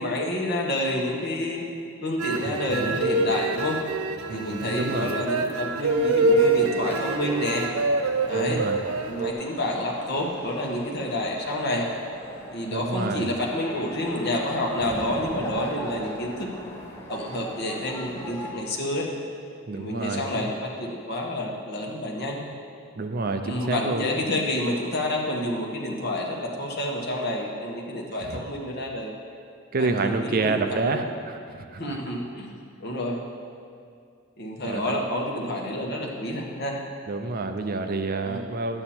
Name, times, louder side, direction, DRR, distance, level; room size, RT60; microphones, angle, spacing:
voice 1, 0.0-1.6 2.0-3.8 4.3-7.7 8.3-8.6 9.0-11.9 12.5-16.5 17.1-19.1 19.7-22.4 23.4-29.1 29.8-31.0 31.8-32.5 32.8-33.2 34.4-36.8 38.2-38.4, left 1 dB, 50° left, -1 dB, 1.4 m, -29 dB
sound 1, 2.2-9.3, right 2 dB, 90° right, 0.5 m, -25 dB
voice 2, 2.5-3.0 4.3-5.1 8.3-8.8 12.7-13.3 19.7-20.5 23.0-24.1 28.2-28.4 29.7-32.0 34.6-35.0 37.1-38.8, right 3 dB, 45° right, 7 dB, 0.5 m, -29 dB
sound 2, 5.8-18.5, equal, 10° left, 1.1 m, -39 dB
11.0 x 8.8 x 4.4 m, 2.3 s
head